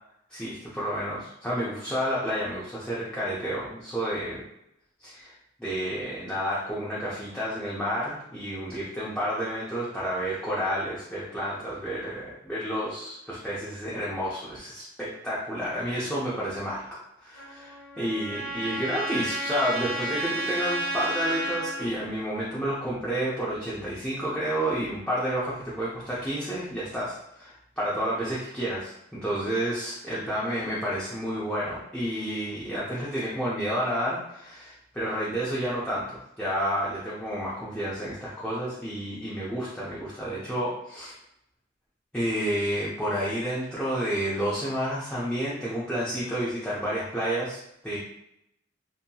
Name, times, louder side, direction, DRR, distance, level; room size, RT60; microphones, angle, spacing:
voice 1, 0.3-4.4 5.0-5.3 5.6-41.1 42.1-48.0, equal, 5° left, -8 dB, 0.4 m, -30 dB
Trumpet, 17.3-21.9, right 1 dB, 70° left, 0.7 m, -32 dB
2.7 x 2.7 x 2.2 m, 0.80 s
head